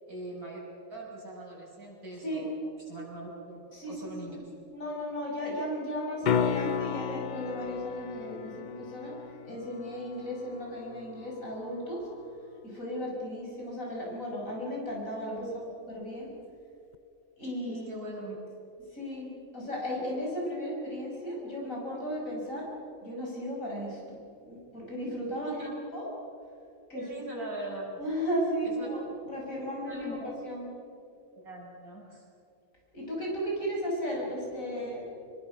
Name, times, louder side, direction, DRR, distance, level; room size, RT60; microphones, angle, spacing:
voice 1, 0.1-0.6 0.9-3.6 3.9-4.5 15.4-15.7 17.7-18.4 25.4-25.8 26.9-28.0 28.6-28.9 29.5-30.3 31.4-32.2, right 1 dB, 75° right, -3 dB, 6.7 m, -41 dB
voice 2, 3.7-4.4 4.7-12.1 12.6-15.6 15.9-16.3 17.4-17.8 18.9-22.7 23.0-26.1 26.9-27.1 28.0-30.7 32.9-35.0, equal, 60° left, -2 dB, 6.6 m, -35 dB
sound 1, 6.2-12.3 16.9-17.0, left 8 dB, 85° left, 0.4 m, -35 dB
26.5 x 22.0 x 6.0 m, 2.6 s
omnidirectional pair, 1.6 m